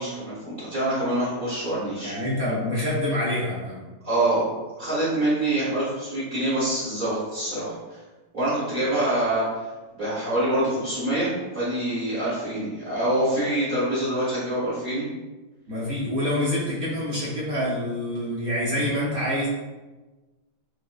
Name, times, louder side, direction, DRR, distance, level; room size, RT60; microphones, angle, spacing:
voice 1, 0.0-2.1 4.0-4.4 4.8-8.0 8.3-9.7 9.9-15.0, right 1 dB, 30° right, -11 dB, 1.1 m, -25 dB
voice 2, 2.0-3.8 15.7-19.5, left 1 dB, 65° right, -7 dB, 0.9 m, -26 dB
4.9 x 2.1 x 2.2 m, 1.2 s
omnidirectional pair, 2.2 m